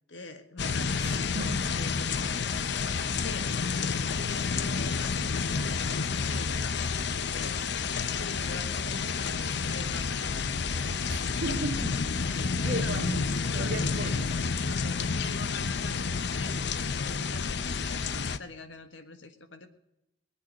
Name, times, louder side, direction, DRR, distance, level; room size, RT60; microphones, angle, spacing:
voice 1, 0.1-2.9 3.2-5.1 5.5-6.0 6.2-7.6 8.2-10.5 12.6-13.1 13.6-14.1 14.6-19.7, left 3 dB, 90° left, 8 dB, 1.7 m, -45 dB
sound 1, 0.6-18.4, left 5 dB, 65° left, 0.7 m, -30 dB
voice 2, 1.0-1.6 11.1-12.0 12.2-13.2 13.5-14.3, right 2 dB, 70° right, -5 dB, 2.0 m, -36 dB
19.5 x 9.0 x 6.5 m, 0.87 s
head